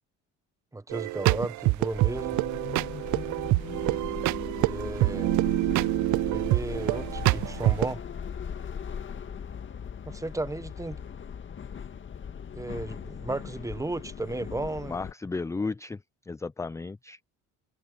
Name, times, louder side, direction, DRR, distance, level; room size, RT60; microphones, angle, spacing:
voice 1, 0.7-2.4 4.6-5.4 6.3-8.0 10.1-11.0 12.5-14.9, right 2 dB, 10° right, 1.1 m, -34 dB
sound 1, 0.9-7.9, right 21 dB, 70° right, 0.5 m, -26 dB
sound 2, 1.9-15.1, left 7 dB, 40° left, 1.9 m, -39 dB
voice 2, 14.9-16.0 16.3-17.2, left 4 dB, 10° left, 0.4 m, -34 dB
cardioid pair, 90°, 31 cm